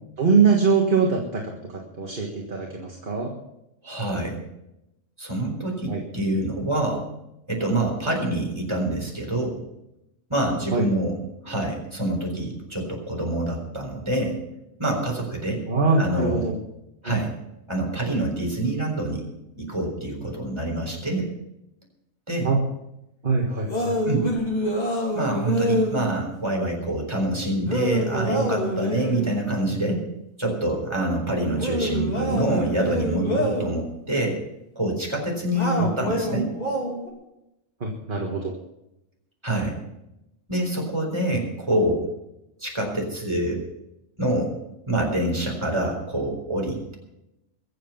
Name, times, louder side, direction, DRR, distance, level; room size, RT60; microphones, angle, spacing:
voice 1, 0.2-1.5 2.0-3.3 5.9-6.0 10.7-10.9 15.6-16.5 17.0-17.2 22.4-22.6 23.2-23.9 35.8-35.9 37.8-38.5 41.3-41.4, right 4 dB, 40° right, 1 dB, 1.8 m, -23 dB
voice 2, 3.8-4.4 5.2-7.1 7.5-9.6 10.3-11.2 11.4-14.4 14.8-15.6 16.0-16.5 17.0-17.3 17.7-19.2 19.6-21.3 22.3-22.5 24.0-24.3 25.1-30.0 30.4-34.4 34.8-36.5 39.4-39.8 40.5-42.0 42.6-43.6 44.2-44.5 44.9-46.9, right 1 dB, 20° right, 0 dB, 4.3 m, -26 dB
sound 1, 23.7-26.1 27.7-29.3 31.5-33.8 35.5-37.1, left 1 dB, 30° left, 2.9 m, -26 dB
23.0 x 7.7 x 5.8 m, 0.87 s
omnidirectional pair, 1.4 m